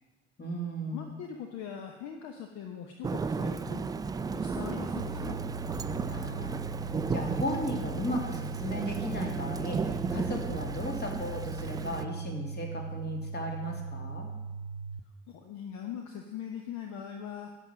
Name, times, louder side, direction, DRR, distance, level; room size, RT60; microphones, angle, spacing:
voice 1, 0.4-1.1 6.0-14.3, equal, 30° left, 1 dB, 2.6 m, -36 dB
voice 2, 0.9-3.8 4.2-5.4 15.3-17.5, left 8 dB, 50° left, 5 dB, 1.1 m, -41 dB
Thunder / Rain, 3.0-12.1, right 5 dB, 10° right, 0.3 m, -34 dB
sound 1, 5.0-15.0, right 5 dB, 80° right, 0.5 m, -39 dB
11.0 x 7.4 x 6.3 m, 1.2 s
figure-of-eight pair, 55°, 35 cm